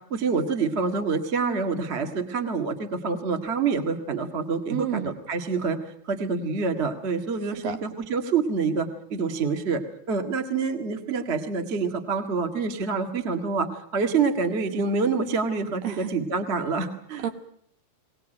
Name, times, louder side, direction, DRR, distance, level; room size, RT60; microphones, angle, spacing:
voice 1, 0.1-5.8 6.0-9.8 10.1-17.2, right 5 dB, 35° right, 6 dB, 1.0 m, -27 dB
voice 2, 4.7-5.2 7.6-7.8 15.8-16.1 17.2-17.3, right 9 dB, 70° right, 7 dB, 3.2 m, -30 dB
22.5 x 18.5 x 9.0 m, 0.67 s
omnidirectional pair, 4.5 m